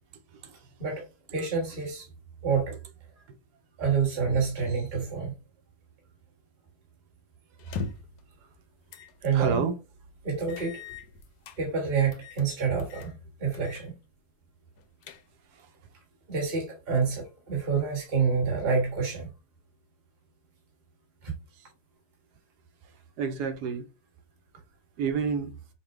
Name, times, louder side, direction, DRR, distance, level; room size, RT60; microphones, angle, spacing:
voice 1, 0.3-0.7 1.4-1.5 3.3-3.4 9.3-9.8 15.5-15.7 21.6-21.7 23.2-23.8 25.0-25.5, right 5 dB, 80° right, 1.2 m, -30 dB
voice 2, 1.3-2.1 2.4-2.8 3.8-5.3 9.2-9.7 10.2-10.8 11.6-13.9 16.3-19.3 21.2-21.3, right 5 dB, 30° right, 1.5 m, -27 dB
sound 1, 7.6-8.2 8.9-9.1 9.5-9.6 10.5-11.6 12.1-12.5 12.8-13.1 13.5-13.9 14.2-14.3 14.8-15.5, left 4 dB, 85° left, 1.2 m, -40 dB
5.8 x 2.2 x 3.1 m
omnidirectional pair, 1.7 m